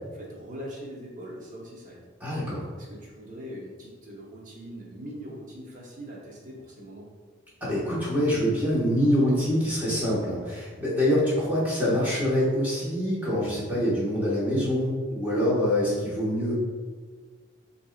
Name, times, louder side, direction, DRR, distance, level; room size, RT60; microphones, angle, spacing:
voice 1, 0.2-2.1 2.8-7.1, equal, 40° right, -3 dB, 0.9 m, -41 dB
voice 2, 2.2-2.6 7.6-16.5, equal, 10° right, -9 dB, 1.4 m, -25 dB
6.6 x 2.7 x 2.4 m, 1.5 s
head